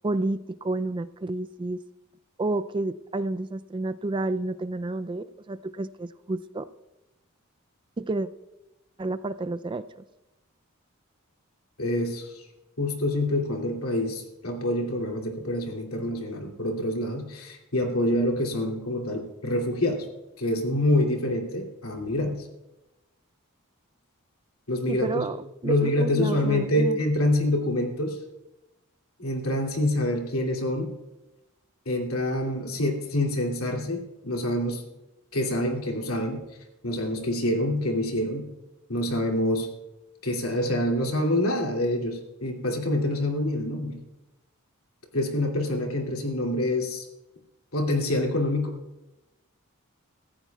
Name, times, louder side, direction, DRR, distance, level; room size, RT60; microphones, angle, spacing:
voice 1, 0.0-1.8 2.4-6.7 8.0-8.3 9.0-10.0 24.9-27.0, right 2 dB, 25° right, 12 dB, 0.4 m, -30 dB
voice 2, 11.8-12.4 12.8-20.1 20.4-22.5 24.7-25.2 25.6-28.2 29.2-30.9 31.9-34.8 35.3-36.4 36.8-38.5 38.9-39.7 40.2-44.0 45.1-47.0 47.7-48.8, left 1 dB, 90° left, 1 dB, 2.6 m, -26 dB
25.5 x 14.5 x 2.3 m, 0.98 s
head